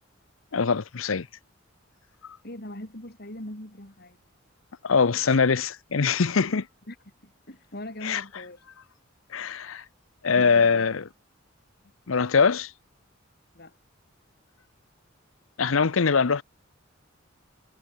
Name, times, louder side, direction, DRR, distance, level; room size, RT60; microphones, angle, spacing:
voice 1, 0.5-1.3 2.2-2.4 4.8-6.7 8.0-8.2 9.3-9.8 10.2-11.0 12.1-12.7 15.6-16.4, left 5 dB, 80° left, 0.7 m, -23 dB
voice 2, 2.4-4.2 6.9-7.0 7.2-8.6 10.3-10.8 13.5-13.7, left 1 dB, 50° left, 5.6 m, -40 dB
head